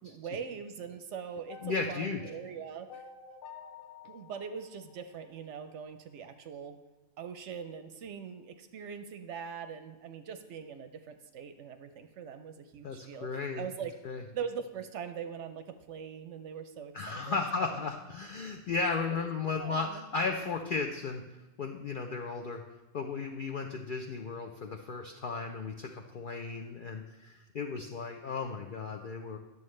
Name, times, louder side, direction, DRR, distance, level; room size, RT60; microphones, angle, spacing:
voice 1, 0.0-3.0 4.0-6.8 7.2-17.8 19.1-20.1, right 7 dB, 65° right, 9 dB, 0.8 m, -42 dB
sound 1, 1.5-5.7, left 6 dB, 85° left, 1.1 m, -51 dB
voice 2, 1.6-2.2 12.8-13.7 14.0-14.2 16.9-21.2 21.6-22.6 22.9-29.4, left 4 dB, 65° left, 2 dB, 0.5 m, -35 dB
10.5 x 7.0 x 3.2 m, 1.1 s
omnidirectional pair, 1.5 m